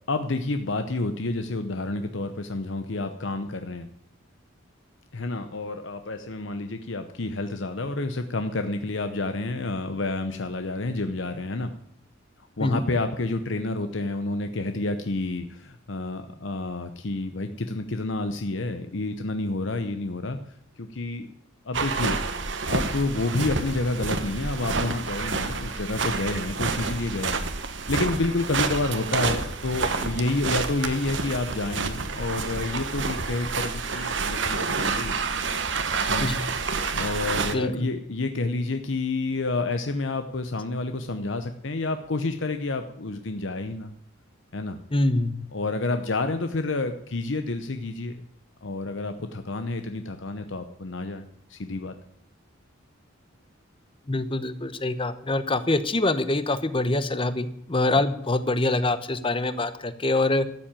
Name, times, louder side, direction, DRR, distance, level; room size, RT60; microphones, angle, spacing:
voice 1, 0.1-3.9 5.1-11.7 12.6-20.4 20.8-21.3 21.6-22.2 22.7-35.2 36.1-36.3 36.9-43.9 44.5-44.8 45.5-48.2 48.6-51.9, left 2 dB, 65° left, 8 dB, 0.8 m, -29 dB
sound 1, 21.7-37.5, right 4 dB, 60° right, 1.3 m, -29 dB
voice 2, 44.9-45.4 54.1-60.5, left 2 dB, 25° left, 13 dB, 0.9 m, -25 dB
13.5 x 7.5 x 8.9 m, 0.73 s
head